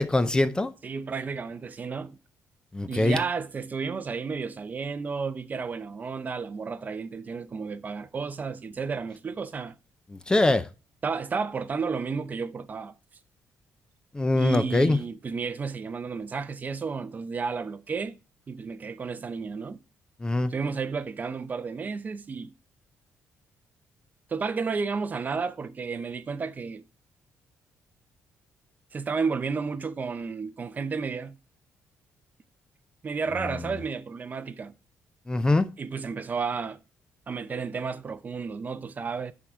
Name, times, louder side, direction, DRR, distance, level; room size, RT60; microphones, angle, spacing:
voice 1, 0.0-0.7 2.7-3.2 10.1-10.7 14.1-15.0 20.2-20.5 35.3-35.7, left 2 dB, 15° left, 0.4 m, -23 dB
voice 2, 0.8-2.2 2.9-9.7 11.0-12.9 14.3-18.2 18.5-19.8 20.5-22.5 24.3-26.8 28.9-31.4 33.0-34.7 35.8-36.8 37.3-39.3, right 5 dB, 35° right, 0.5 m, -32 dB
10.0 x 3.7 x 4.4 m
cardioid pair, 115°, 5 cm